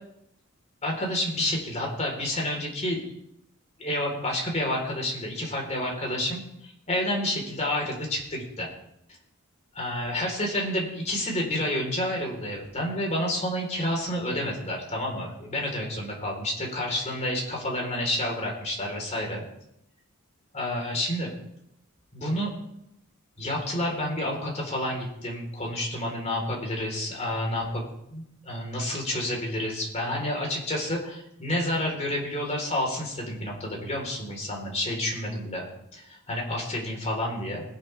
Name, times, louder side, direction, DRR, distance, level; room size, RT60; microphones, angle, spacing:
voice 1, 0.8-3.0 3.8-8.7 9.7-19.4 20.5-21.3 22.1-22.5 23.4-27.8 28.1-35.7 35.9-37.6, left 1 dB, 30° left, -1 dB, 4.1 m, -29 dB
20.0 x 11.5 x 3.5 m, 0.80 s
head